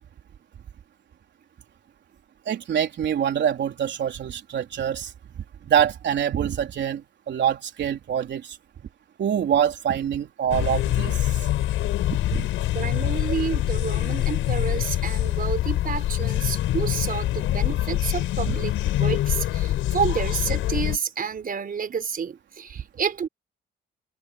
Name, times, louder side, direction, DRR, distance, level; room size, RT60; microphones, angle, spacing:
voice 1, 2.5-8.6 9.2-11.4 12.3-12.5 18.5-18.6, right 9 dB, 65° right, 3.9 m, -25 dB
sound 1, 10.5-21.0, left 14 dB, 85° left, 6.0 m, -25 dB
voice 2, 12.7-23.3, right 6 dB, 45° right, 4.8 m, -29 dB
cardioid pair, 90°, 20 cm